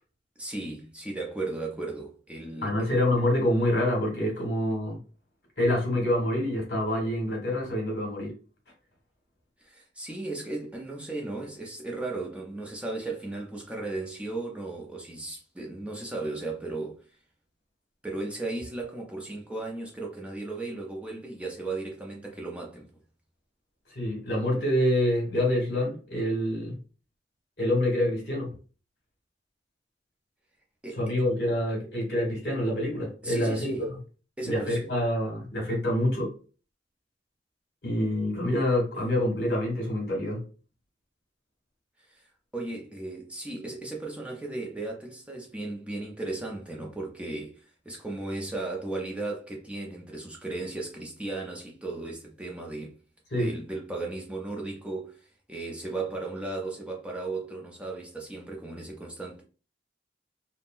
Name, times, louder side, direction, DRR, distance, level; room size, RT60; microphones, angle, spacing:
voice 1, 0.4-2.9 9.6-17.0 18.0-22.9 30.8-31.2 33.2-33.9 34.4-34.8 42.1-42.3 42.5-52.9 53.4-59.4, right 2 dB, 5° right, 0.5 m, -36 dB
voice 2, 2.6-5.0 5.6-8.3 23.9-26.8 27.6-28.6 31.0-33.7 34.4-36.3 37.8-40.4 53.3-53.5, left 1 dB, 65° left, 1.5 m, -26 dB
3.5 x 2.0 x 2.5 m
head